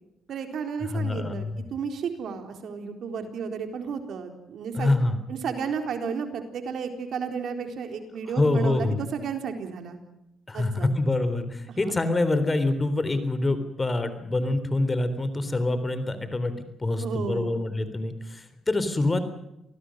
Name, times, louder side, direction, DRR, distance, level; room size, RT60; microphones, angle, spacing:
voice 1, 0.3-1.5 1.7-4.9 5.3-10.0 10.5-10.9 11.7-11.9 17.0-17.6, right 6 dB, 65° right, 6 dB, 4.0 m, -32 dB
voice 2, 0.9-1.6 4.7-5.2 8.4-9.0 10.5-16.5 16.8-19.2, left 2 dB, 25° left, 11 dB, 3.7 m, -25 dB
27.5 x 19.5 x 6.5 m, 0.85 s
cardioid pair, 90°, 0 cm